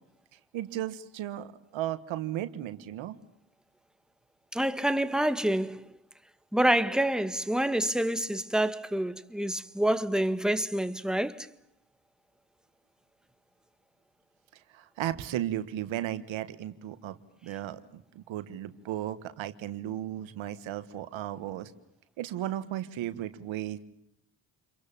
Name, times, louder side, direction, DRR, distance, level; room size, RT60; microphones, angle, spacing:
voice 1, 0.3-3.2 14.5-21.7 22.2-23.8, right 12 dB, 90° right, 1.5 m, -35 dB
voice 2, 4.5-5.9 6.5-11.5, right 1 dB, ahead, 1.9 m, -27 dB
29.5 x 23.0 x 8.8 m
supercardioid pair, 45°, 45 cm